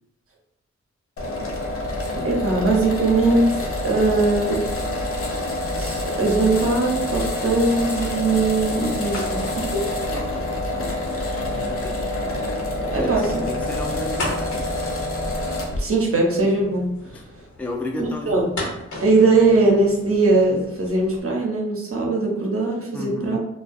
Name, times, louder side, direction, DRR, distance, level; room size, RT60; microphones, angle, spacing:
sound 1, 1.2-15.8, left 1 dB, 50° left, 0.6 m, -27 dB
voice 1, 2.2-3.5 3.8-4.6 5.8-9.8 12.9-13.4 15.7-16.9 18.0-18.5 19.0-23.4, right 3 dB, 50° right, -1 dB, 0.7 m, -20 dB
sound 2, 7.0-21.2, left 1 dB, 75° left, 0.9 m, -39 dB
voice 2, 10.1-12.1 12.9-13.1 13.4-14.6 17.1-17.3 17.6-18.4 22.9-23.4, left 2 dB, 5° left, 2 dB, 0.3 m, -34 dB
2.3 x 2.2 x 2.5 m, 0.87 s
cardioid pair, 50°, 29 cm